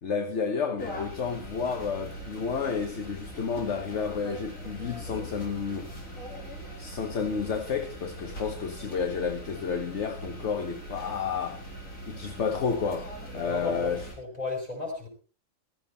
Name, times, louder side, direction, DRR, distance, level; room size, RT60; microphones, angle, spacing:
voice 1, 0.0-6.0 6.8-11.7 12.1-14.0, left 6 dB, 60° left, 1.5 m, -31 dB
sound 1, 0.8-14.1, equal, 80° left, 4.7 m, -41 dB
voice 2, 13.4-15.1, left 2 dB, 30° left, 6.1 m, -34 dB
16.5 x 14.0 x 4.2 m
omnidirectional pair, 1.4 m